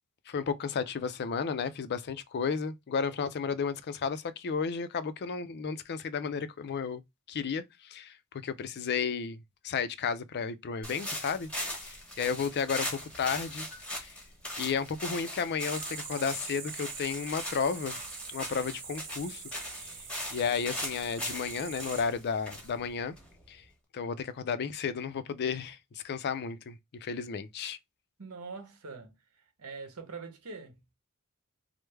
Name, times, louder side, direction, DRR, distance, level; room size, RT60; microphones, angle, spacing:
voice 1, 0.3-7.0 7.3-8.2 8.4-9.4 9.6-11.5 11.8-14.1 14.6-18.0 18.3-19.4 19.8-20.0 20.3-23.1 23.5-23.6 23.9-27.8, left 6 dB, 50° left, 0.4 m, -33 dB
sound 1, 10.8-23.6, left 1 dB, 5° left, 1.0 m, -40 dB
sound 2, 13.3-13.9 15.5-16.4 16.9-17.2 17.5-18.1, right 1 dB, 20° right, 1.0 m, -53 dB
sound 3, 15.6-22.0, right 6 dB, 40° right, 0.7 m, -44 dB
voice 2, 28.2-30.8, right 4 dB, 75° right, 0.9 m, -44 dB
3.2 x 2.0 x 3.2 m
head